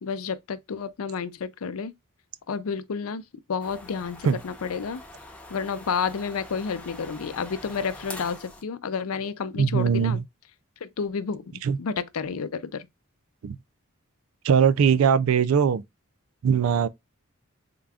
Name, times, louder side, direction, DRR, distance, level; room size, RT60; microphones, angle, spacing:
voice 1, 0.0-1.9 2.5-3.2 3.5-5.0 5.5-10.2 10.8-11.4 11.8-12.9, left 5 dB, 85° left, 0.5 m, -30 dB
sound 1, 3.6-8.6, left 2 dB, 5° left, 0.6 m, -44 dB
voice 2, 9.6-10.2 11.6-11.8 13.4-13.6 14.4-15.8 16.4-16.9, right 7 dB, 80° right, 0.4 m, -21 dB
3.7 x 2.3 x 3.3 m
head